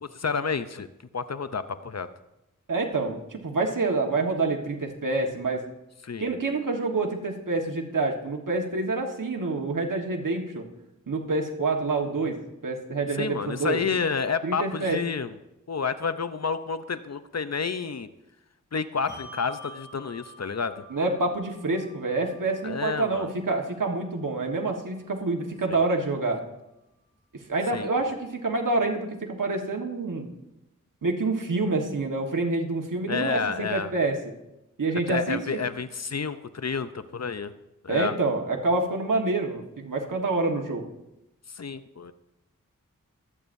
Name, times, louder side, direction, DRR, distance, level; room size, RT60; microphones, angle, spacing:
voice 1, 0.0-0.9 1.1-2.1 6.0-6.3 13.2-15.4 15.7-18.1 18.7-20.8 22.6-23.3 27.7-27.9 33.1-33.9 35.1-37.5 37.8-38.1 41.5-42.1, left 5 dB, 55° left, 12 dB, 0.7 m, -30 dB
voice 2, 2.7-5.6 6.2-10.6 11.1-12.4 12.6-13.8 14.4-15.0 20.9-26.4 27.5-30.3 31.0-34.2 34.8-35.4 37.9-40.8, right 3 dB, 85° right, 2 dB, 1.5 m, -27 dB
Bell, 19.1-25.9, left 1 dB, 35° left, 3.4 m, -49 dB
23.5 x 8.8 x 2.7 m, 0.91 s
wide cardioid pair, 40°, 31 cm